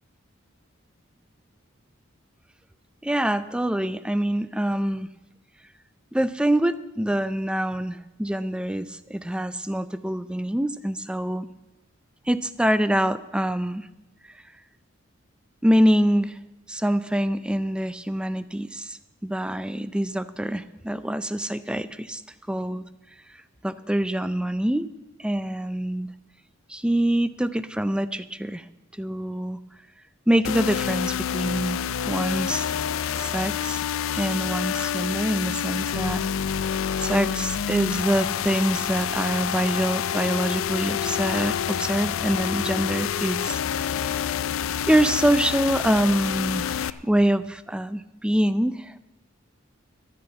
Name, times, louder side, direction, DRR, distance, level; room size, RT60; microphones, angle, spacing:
voice 1, 3.0-5.1 6.1-11.5 12.3-13.9 15.6-16.4 16.7-22.2 22.5-22.8 23.6-24.9 25.2-26.1 26.7-28.7 29.0-29.6 30.3-32.7 33.2-33.8 34.1-36.2 37.0-44.3 44.9-49.0, right 1 dB, 5° right, 14 dB, 0.4 m, -25 dB
sound 1, 30.4-46.9, left 8 dB, 80° left, 0.4 m, -28 dB
12.5 x 6.7 x 8.9 m, 1.0 s
head